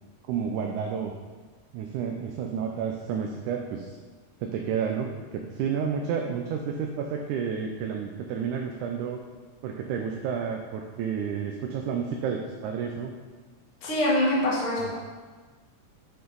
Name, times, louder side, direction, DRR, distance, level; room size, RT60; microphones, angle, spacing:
voice 1, 0.3-1.2 1.7-4.0 4.4-9.2 9.6-13.1 14.8-15.0, right 7 dB, 80° right, 2 dB, 2.1 m, -31 dB
voice 2, 13.8-15.0, left 1 dB, 50° left, -6 dB, 2.3 m, -24 dB
8.7 x 6.8 x 3.9 m, 1.4 s
omnidirectional pair, 3.5 m